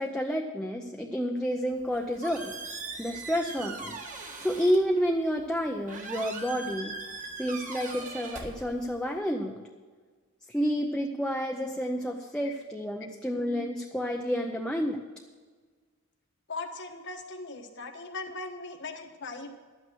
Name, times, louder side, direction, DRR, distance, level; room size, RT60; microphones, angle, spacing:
voice 1, 0.0-2.5 3.0-4.0 4.4-6.9 7.4-9.7 10.5-15.0, equal, 5° left, 1 dB, 0.7 m, -30 dB
Squeak, 1.7-9.2, right 3 dB, 35° right, 1.6 m, -41 dB
voice 2, 16.5-19.5, left 3 dB, 55° left, 3 dB, 1.3 m, -39 dB
12.0 x 9.2 x 6.2 m, 1.5 s
head